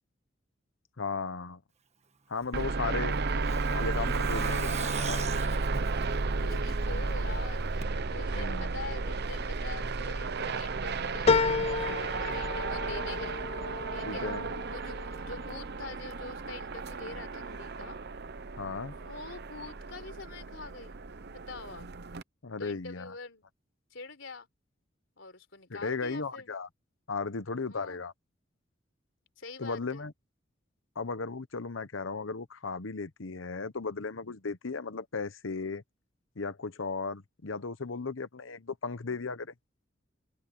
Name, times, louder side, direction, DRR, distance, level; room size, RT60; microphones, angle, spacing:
voice 1, 1.0-1.6 2.3-3.2 3.7-5.3 7.2-7.5 8.3-8.7 14.0-14.5 18.6-18.9 22.4-23.1 25.7-26.7 27.1-28.1 29.6-30.1 30.9-35.8 36.4-39.5, left 4 dB, 85° left, 1.0 m, -36 dB
Truck, 2.4-7.1 7.4-7.5 7.8-7.9, right 5 dB, 35° right, 1.4 m, -42 dB
helicopter circling, 2.5-22.2, right 3 dB, 60° right, 0.8 m, -33 dB
voice 2, 6.4-13.5 13.9-14.3 14.7-18.0 18.9-21.0 21.3-21.9 22.6-23.5 23.9-24.5 25.2-26.5 27.7-28.0 29.4-30.1, left 3 dB, 70° left, 4.1 m, -45 dB
sound 1, 11.3-16.0 16.5-17.2 17.6-17.7, left 4 dB, 30° left, 0.5 m, -31 dB
head